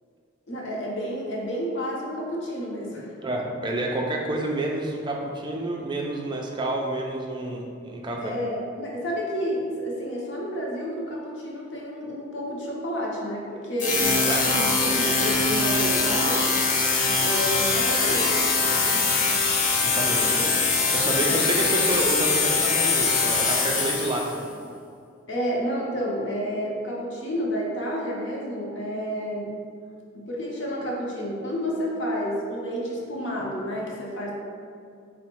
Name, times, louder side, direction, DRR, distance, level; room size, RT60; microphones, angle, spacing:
voice 1, 0.5-3.1 8.2-16.5 17.2-18.4 20.1-20.6 21.3-21.4 25.3-29.5 30.1-34.3, equal, 60° left, -3 dB, 0.8 m, -30 dB
voice 2, 3.2-8.3 14.3-14.4 18.8-19.0 19.8-20.2 20.9-24.4, right 2 dB, 20° right, 0 dB, 0.4 m, -29 dB
sound 1, 13.8-24.4, left 4 dB, 35° left, 0.5 m, -22 dB
4.2 x 2.1 x 4.5 m, 2.3 s
head